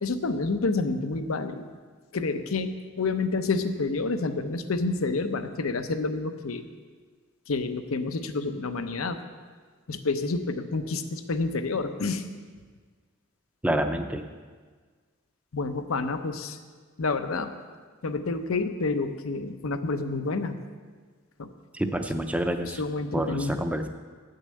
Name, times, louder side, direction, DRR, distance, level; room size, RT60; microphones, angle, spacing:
voice 1, 0.0-1.7 2.1-2.7 3.0-6.6 7.5-9.2 9.9-12.2 15.5-16.6 17.0-17.5 18.0-20.6 21.4-21.5 22.8-23.5, left 3 dB, 90° left, 8 dB, 0.7 m, -28 dB
voice 2, 13.6-14.3 21.7-22.8 23.1-23.9, right 1 dB, 5° right, 6 dB, 0.5 m, -28 dB
8.4 x 6.6 x 7.7 m, 1.5 s
head